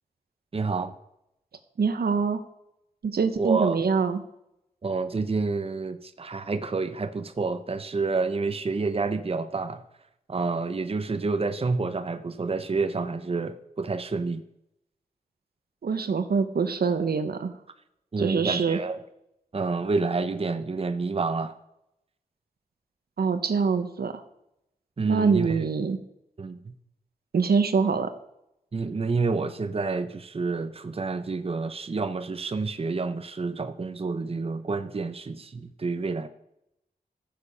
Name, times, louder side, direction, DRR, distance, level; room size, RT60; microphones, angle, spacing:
voice 1, 0.5-0.9 3.4-3.8 4.8-9.8 10.3-14.4 18.1-19.0 19.5-21.5 25.0-25.6 26.4-26.7 28.7-36.3, right 4 dB, 40° right, 9 dB, 0.7 m, -29 dB
voice 2, 1.8-2.4 3.0-4.2 15.8-17.5 18.2-18.8 23.2-24.2 25.0-26.0 27.3-28.1, right 5 dB, 80° right, 9 dB, 1.0 m, -24 dB
14.5 x 6.9 x 5.5 m, 0.81 s
wide cardioid pair, 95°, 16 cm